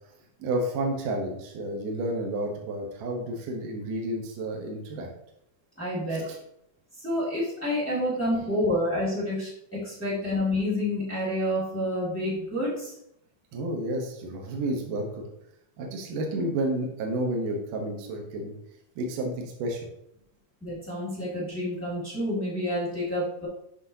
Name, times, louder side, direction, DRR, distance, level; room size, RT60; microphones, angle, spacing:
voice 1, 0.4-5.1 6.1-6.4 13.5-15.2 15.8-18.5 19.0-19.9, right 1 dB, 75° right, 0 dB, 2.5 m, -31 dB
voice 2, 5.8-6.3 7.0-12.9 20.6-23.5, left 1 dB, 10° left, -7 dB, 0.8 m, -28 dB
7.7 x 6.2 x 2.7 m, 0.78 s
omnidirectional pair, 3.8 m